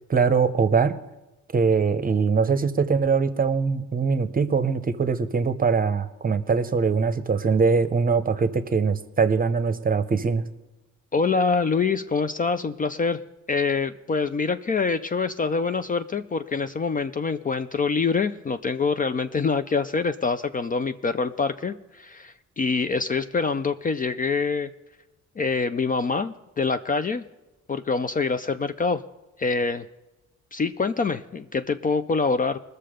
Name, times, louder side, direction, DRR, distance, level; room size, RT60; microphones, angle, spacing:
voice 1, 0.1-1.0 1.5-10.5, right 5 dB, 30° right, 11 dB, 0.8 m, -22 dB
voice 2, 11.1-13.2 13.5-24.7 25.4-27.2 27.7-29.0 29.4-29.8 30.5-32.6, left 4 dB, 30° left, 10 dB, 0.4 m, -25 dB
20.0 x 6.7 x 5.0 m, 1.0 s
cardioid pair, 90°, 30 cm